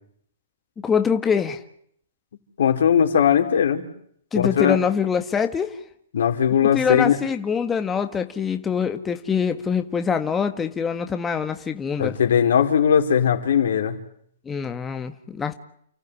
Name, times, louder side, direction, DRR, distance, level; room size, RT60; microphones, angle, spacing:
voice 1, 0.8-1.6 4.3-5.8 6.7-12.2 14.4-15.5, left 6 dB, 15° left, 7 dB, 1.6 m, -24 dB
voice 2, 2.6-3.8 4.3-4.8 6.1-7.2 12.0-14.0, left 8 dB, 75° left, 5 dB, 4.4 m, -19 dB
30.0 x 15.0 x 9.8 m, 0.66 s
hypercardioid pair, 145°, 0 cm